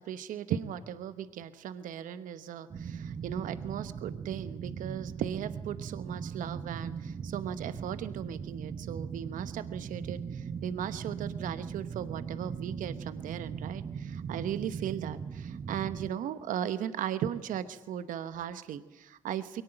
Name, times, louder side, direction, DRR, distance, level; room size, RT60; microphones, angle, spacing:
voice 1, 0.0-19.6, right 10 dB, 75° right, 12 dB, 1.0 m, -37 dB
sound 1, 2.7-16.1, right 6 dB, 45° right, 0.9 m, -39 dB
22.0 x 18.5 x 9.0 m, 1.1 s
supercardioid pair, 50°, 14 cm